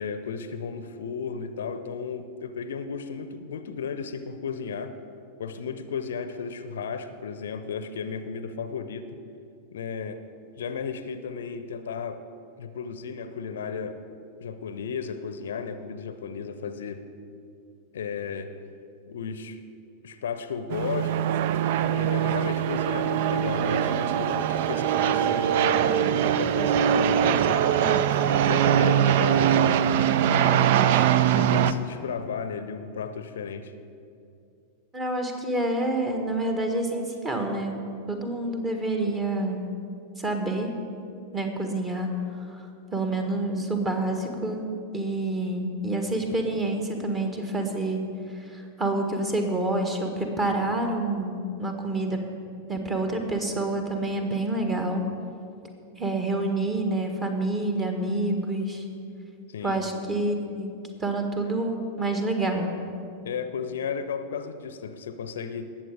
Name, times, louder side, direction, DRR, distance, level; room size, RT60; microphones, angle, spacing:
voice 1, 0.0-4.9 5.4-9.1 9.7-10.2 10.6-12.2 12.6-14.0 14.4-17.0 17.9-18.5 19.1-19.6 20.0-21.3 21.7-25.9 26.2-28.1 28.4-29.9 30.3-33.7 59.5-59.8 63.2-65.7, left 6 dB, 65° left, 11 dB, 0.6 m, -34 dB
sound 1, 20.7-31.7, right 9 dB, 50° right, 0.4 m, -22 dB
voice 2, 34.9-37.8 38.1-39.6 40.2-40.7 41.3-42.1 42.5-42.6 42.9-44.7 44.9-48.0 48.5-52.2 52.7-55.0 56.0-58.8 59.6-60.7 61.0-62.7, right 2 dB, 20° right, 4 dB, 1.6 m, -28 dB
19.0 x 7.6 x 5.0 m, 2.5 s
figure-of-eight pair, 90°, 0 cm